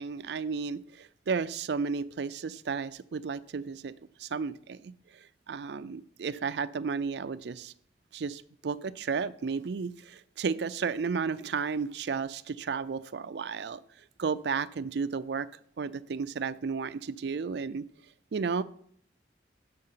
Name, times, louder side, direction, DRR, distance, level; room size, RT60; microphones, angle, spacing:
voice 1, 0.0-3.9 4.2-4.9 5.5-7.7 8.1-13.8 14.2-15.5 15.8-17.8 18.3-18.6, right 5 dB, 70° right, 15 dB, 0.4 m, -33 dB
7.8 x 5.8 x 5.5 m, 0.62 s
head